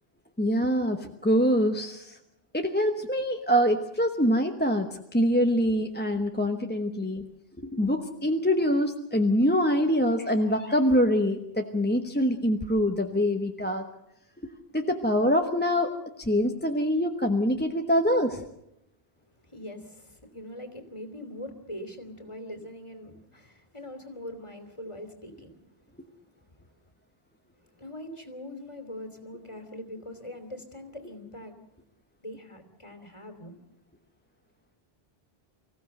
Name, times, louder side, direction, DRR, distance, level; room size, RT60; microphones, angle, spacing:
voice 1, 0.4-2.2 2.5-7.3 7.6-13.8 14.4-15.9 16.2-18.4, equal, 10° left, 3 dB, 1.1 m, -25 dB
voice 2, 19.4-25.6 27.8-31.6 32.2-33.6, left 1 dB, 30° left, 6 dB, 3.0 m, -42 dB
25.0 x 15.5 x 7.9 m, 0.81 s
omnidirectional pair, 1.0 m